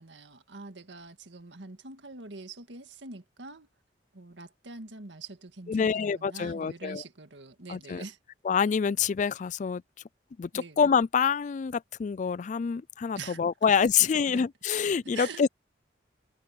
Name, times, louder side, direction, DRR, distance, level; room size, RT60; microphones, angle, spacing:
voice 1, 0.0-3.7 4.1-5.9 6.1-8.2 10.5-10.8 13.2-13.7 14.1-14.4 15.1-15.5, right 3 dB, 85° right, 1.8 m, -44 dB
voice 2, 5.7-7.0 7.7-8.0 8.4-9.8 10.4-15.5, left 6 dB, 40° left, 0.3 m, -26 dB
head